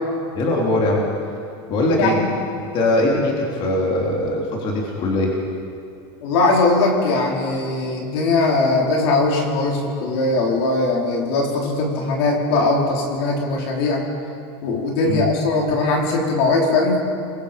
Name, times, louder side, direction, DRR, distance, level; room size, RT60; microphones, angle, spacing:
voice 1, 0.3-1.0 1.7-2.2 2.6-5.3 15.0-15.3, left 1 dB, 40° left, -2 dB, 3.6 m, -21 dB
voice 2, 2.0-2.3 6.2-14.0 14.6-17.0, left 3 dB, 70° left, -1 dB, 4.6 m, -20 dB
29.5 x 22.5 x 5.3 m, 2.4 s
supercardioid pair, 155°, 14 cm